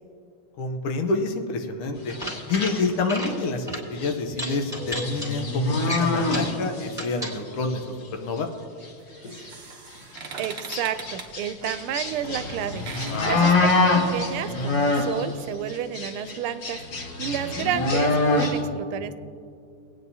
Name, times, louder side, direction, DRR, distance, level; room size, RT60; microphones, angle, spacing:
voice 1, 0.6-2.1 2.5-8.5 13.1-13.6, left 3 dB, 80° left, 5 dB, 1.8 m, -28 dB
sound 1, 2.0-2.7 3.0-3.3 3.7-3.8 4.3-5.3 5.8-6.5 6.9-7.4, equal, ahead, 2.0 m, -32 dB
sound 2, 2.1-3.4 4.0-4.1 4.4-7.0 7.3-7.8 8.4-8.5 8.8-8.9 9.2-9.5 10.1-15.3 15.7-18.6, left 3 dB, 55° left, 2.1 m, -26 dB
sound 3, 9.0-14.6, right 4 dB, 45° right, 0.8 m, -42 dB
voice 2, 10.4-12.8 13.2-13.7 14.1-16.8 17.2-19.1, right 10 dB, 80° right, 11 dB, 1.4 m, -30 dB
23.5 x 9.0 x 2.8 m, 2.5 s
omnidirectional pair, 2.4 m